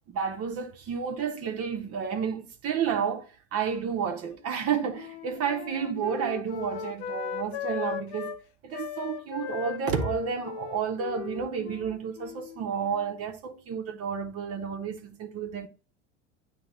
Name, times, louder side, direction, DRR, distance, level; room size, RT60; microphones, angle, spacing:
voice 1, 0.1-8.4 8.6-15.7, right 7 dB, 40° right, 1.2 m, -31 dB
Wind instrument woodwind instrument, 4.4-8.4 8.7-13.2, left 9 dB, 65° left, 0.9 m, -38 dB
9.6 x 3.2 x 3.1 m
hypercardioid pair, 95°, 36 cm